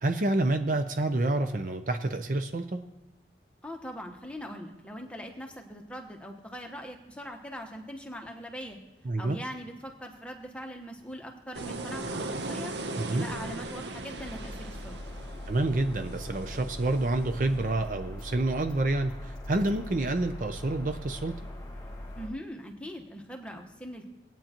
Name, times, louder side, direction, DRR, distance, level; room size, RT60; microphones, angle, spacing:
voice 1, 0.0-2.8 9.0-9.4 13.0-13.3 15.5-21.3, right 2 dB, 45° right, 8 dB, 0.5 m, -28 dB
voice 2, 3.6-8.8 9.2-12.7 13.1-15.0 22.2-24.1, equal, 5° left, 2 dB, 1.1 m, -41 dB
sound 1, 11.5-17.6, right 2 dB, 80° right, 0.8 m, -39 dB
sound 2, 14.2-22.3, left 1 dB, 25° left, 1.8 m, -41 dB
20.5 x 9.0 x 3.0 m, 1.1 s
head